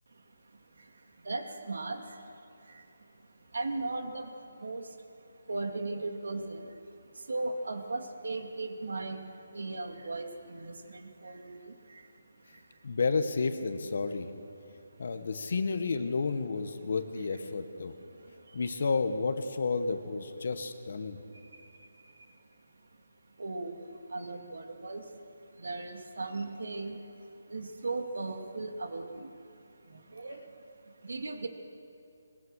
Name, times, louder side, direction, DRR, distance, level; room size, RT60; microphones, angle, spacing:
voice 1, 0.1-13.0 14.7-15.1 17.8-18.7 21.0-23.0 23.2-31.5, right 3 dB, 75° right, 5 dB, 2.6 m, -39 dB
voice 2, 12.8-14.3 15.0-17.9 18.5-21.2, left 4 dB, 45° left, 9 dB, 1.4 m, -31 dB
23.5 x 21.0 x 6.5 m, 2.6 s
hypercardioid pair, 175°, 0 cm